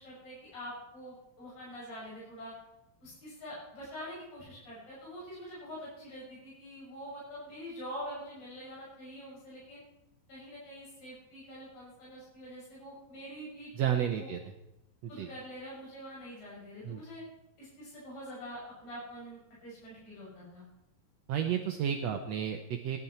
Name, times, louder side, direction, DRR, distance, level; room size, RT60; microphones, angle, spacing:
voice 1, 0.0-2.5 3.0-9.8 10.3-13.9 14.2-14.3 15.1-17.2 17.6-20.7, equal, 65° left, -7 dB, 8.4 m, -45 dB
voice 2, 13.7-14.4 15.2-15.3 16.8-17.0 21.3-23.0, right 9 dB, 90° right, 5 dB, 1.4 m, -31 dB
17.0 x 11.0 x 4.3 m, 0.86 s
omnidirectional pair, 4.1 m